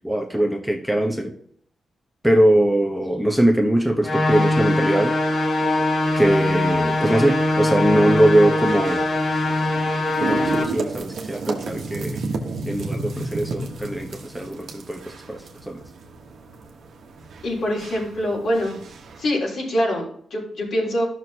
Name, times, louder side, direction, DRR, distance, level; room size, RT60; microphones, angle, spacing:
voice 1, 0.0-1.3 2.2-5.2 6.2-9.1 10.2-12.2 12.7-15.8, right 1 dB, ahead, 1.1 m, -21 dB
sound 1, 4.0-10.6, left 1 dB, 50° left, 2.3 m, -21 dB
sound 2, 6.0-19.2, right 3 dB, 75° right, 1.3 m, -34 dB
voice 2, 17.4-18.8 19.2-21.0, equal, 70° left, 3.6 m, -24 dB
12.5 x 6.3 x 2.9 m
cardioid pair, 70°, 0 cm